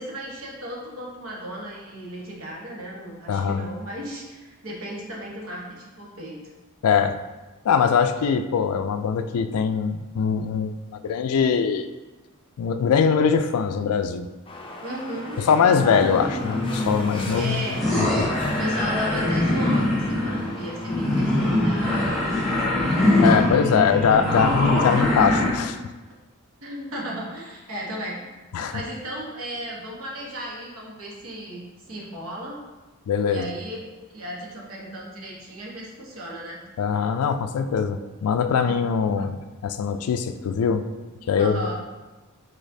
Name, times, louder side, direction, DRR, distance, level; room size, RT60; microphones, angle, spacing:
voice 1, 0.0-6.4 14.8-15.4 17.3-17.9 18.6-22.2 23.3-24.8 25.6-25.8 26.6-28.2 28.7-32.6 33.2-36.6 38.7-38.8 41.4-41.8, right 1 dB, 70° right, -3 dB, 1.1 m, -35 dB
voice 2, 3.3-3.6 6.8-7.2 7.6-10.7 11.0-11.9 12.6-14.3 15.5-17.7 17.9-18.3 23.2-25.8 28.5-28.8 33.1-33.5 36.8-40.8 41.3-41.7, left 6 dB, 85° left, 10 dB, 0.3 m, -22 dB
sound 1, 14.5-22.3, left 2 dB, 25° left, 0.5 m, -39 dB
sound 2, 15.3-25.5, left 1 dB, ahead, 1.3 m, -23 dB
5.0 x 3.9 x 2.7 m, 1.2 s
head